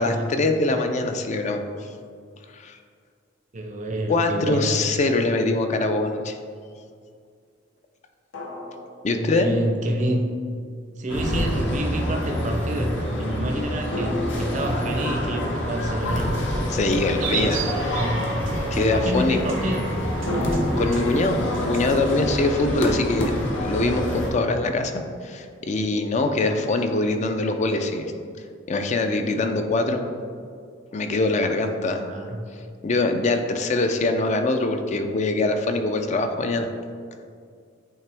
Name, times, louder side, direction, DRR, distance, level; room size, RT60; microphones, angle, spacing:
voice 1, 0.0-1.9 2.5-2.8 4.1-6.3 9.0-9.6 16.7-17.6 17.9-18.0 18.7-19.4 20.4-23.3 23.6-28.1 28.7-30.1 30.9-32.0 32.8-36.7, left 2 dB, 35° left, 6 dB, 0.4 m, -23 dB
voice 2, 3.5-4.8 9.1-10.3 11.0-16.4 17.0-18.3 18.9-19.9 31.9-32.4, right 1 dB, 40° right, 3 dB, 0.6 m, -28 dB
sound 1, 4.8-4.9 8.3-9.8 13.9-17.6 20.3-23.0, left 1 dB, 85° left, 1.2 m, -33 dB
sound 2, 11.1-24.3, equal, 70° left, 1.0 m, -27 dB
sound 3, 17.0-22.0, right 4 dB, 80° right, 0.7 m, -34 dB
8.7 x 3.3 x 3.4 m, 2.2 s
head